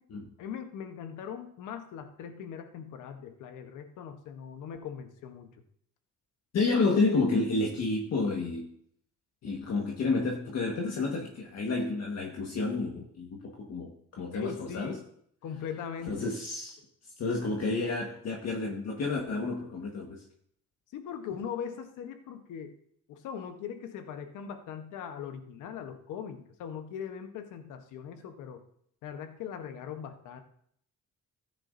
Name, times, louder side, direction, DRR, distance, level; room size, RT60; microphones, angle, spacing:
voice 1, 0.4-5.5 14.3-15.1 15.4-16.4 20.9-22.7 23.1-28.6 29.0-30.4, left 8 dB, 85° left, 7 dB, 1.0 m, -40 dB
voice 2, 6.5-8.7 9.4-14.9 16.1-16.8 17.2-20.2, left 3 dB, 60° left, 0 dB, 1.5 m, -30 dB
14.5 x 9.7 x 2.6 m, 0.67 s
cardioid pair, 90°, 30 cm